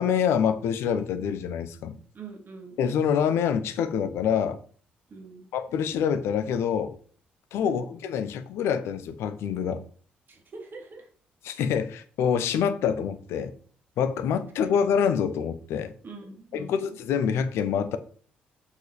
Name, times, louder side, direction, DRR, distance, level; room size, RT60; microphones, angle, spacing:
voice 1, 0.0-2.0 2.8-4.6 5.5-6.9 7.5-9.8 11.4-13.5 14.0-15.9 16.5-18.0, left 7 dB, 60° left, 0.9 m, -26 dB
voice 2, 2.1-2.8 5.1-5.5 7.6-7.9 10.3-11.1 16.0-17.0, right 4 dB, 45° right, 3.2 m, -43 dB
7.3 x 6.7 x 5.0 m
figure-of-eight pair, 40°, 5 cm